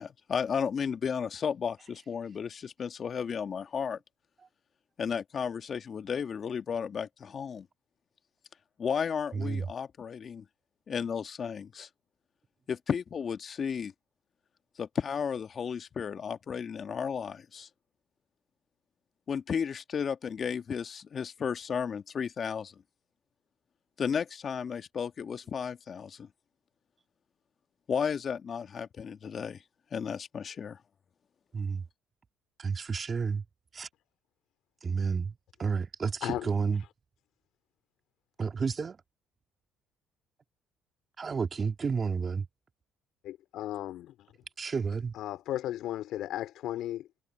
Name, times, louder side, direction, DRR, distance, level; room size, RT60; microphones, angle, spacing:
voice 1, 0.0-4.0 5.0-7.7 8.8-10.4 10.9-11.9 12.7-13.9 14.8-17.7 19.3-22.7 24.0-26.3 27.9-29.6 29.9-30.8, left 7 dB, 45° left, 1.6 m, -33 dB
voice 2, 9.3-9.7 31.5-31.8 32.6-33.4 33.7-33.9 34.8-35.3 35.6-36.8 38.4-39.0 41.2-42.5 44.6-45.1, right 5 dB, 35° right, 2.3 m, -31 dB
voice 3, 43.2-44.1 45.1-47.1, left 13 dB, 70° left, 3.8 m, -35 dB
supercardioid pair, 70°, 0 cm